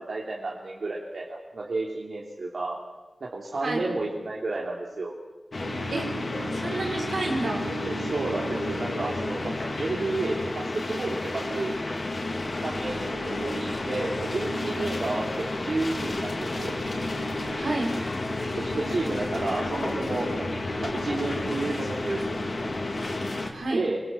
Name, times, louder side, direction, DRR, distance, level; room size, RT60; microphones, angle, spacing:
voice 1, 0.0-2.8 3.2-5.1 7.8-9.5 9.8-12.0 12.6-16.7 18.6-20.5 20.8-22.6 23.7-24.0, right 2 dB, 70° right, -3 dB, 3.4 m, -31 dB
sound 1, 5.5-23.5, left 2 dB, 60° left, 3.9 m, -31 dB
voice 2, 6.5-7.7 17.5-17.9 23.5-23.8, right 2 dB, 85° right, 0 dB, 5.8 m, -30 dB
25.5 x 22.5 x 7.5 m, 1.1 s
wide cardioid pair, 60°, 0 cm